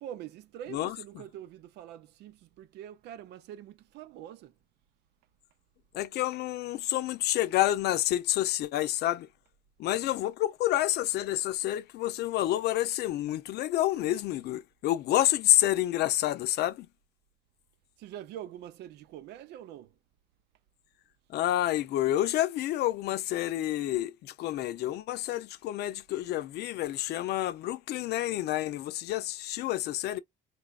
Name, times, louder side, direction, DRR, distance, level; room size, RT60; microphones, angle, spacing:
voice 1, 0.0-4.5 18.0-19.9, right 11 dB, 80° right, 0.6 m, -44 dB
voice 2, 5.9-9.3 9.8-16.9 21.3-30.2, left 14 dB, 75° left, 0.6 m, -28 dB
4.3 x 3.4 x 2.4 m
cardioid pair, 110°, 17 cm